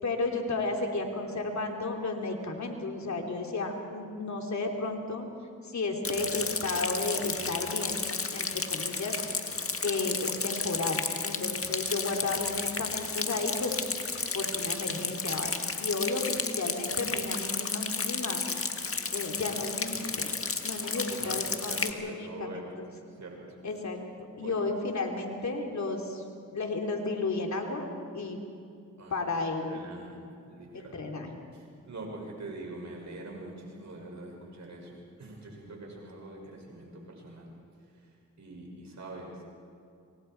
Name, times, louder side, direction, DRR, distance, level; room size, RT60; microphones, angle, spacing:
voice 1, 0.0-5.3 5.6-8.0 8.3-9.2 9.8-13.9 14.3-18.4 19.1-20.3 20.6-22.9 23.6-24.0 24.4-26.2 26.5-27.9 28.1-28.4 29.1-29.8 30.7-31.4, left 3 dB, 70° left, 2 dB, 3.2 m, -33 dB
Rain, 6.0-21.9, left 4 dB, 50° left, 1.8 m, -33 dB
voice 2, 20.9-22.7 23.1-23.4 24.4-24.7 29.0-29.3 29.6-30.2 30.4-31.0 31.5-37.6 37.9-39.4, right 2 dB, 70° right, -1 dB, 6.5 m, -44 dB
27.0 x 24.0 x 4.6 m, 2.5 s
cardioid pair, 50°, 29 cm